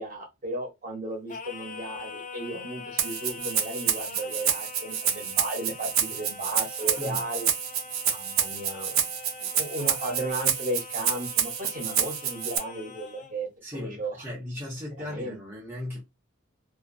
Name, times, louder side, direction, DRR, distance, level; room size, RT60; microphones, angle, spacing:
voice 1, 0.0-7.5 8.1-9.0 9.4-14.2 15.0-15.4, right 1 dB, 40° right, 0.8 m, -35 dB
Singing, 1.3-13.4, left 6 dB, 35° left, 0.4 m, -43 dB
Rattle (instrument), 3.0-12.6, right 9 dB, 80° right, 0.5 m, -28 dB
voice 2, 13.6-16.0, left 1 dB, 10° right, 0.6 m, -37 dB
2.5 x 2.4 x 2.5 m
head